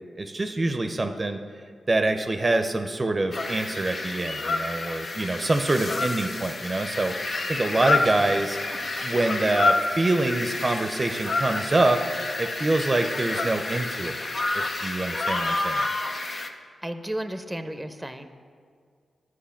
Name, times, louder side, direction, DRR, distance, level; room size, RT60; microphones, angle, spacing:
voice 1, 0.2-1.4 1.9-8.6 9.0-12.0 12.4-14.2 14.5-15.9, right 2 dB, 40° right, 7 dB, 0.6 m, -25 dB
sound 1, 3.3-16.5, left 2 dB, 55° left, 0.8 m, -29 dB
voice 2, 16.8-18.3, right 1 dB, 5° right, 9 dB, 0.8 m, -33 dB
10.5 x 4.8 x 7.1 m, 2.1 s
supercardioid pair, 40°, 0 cm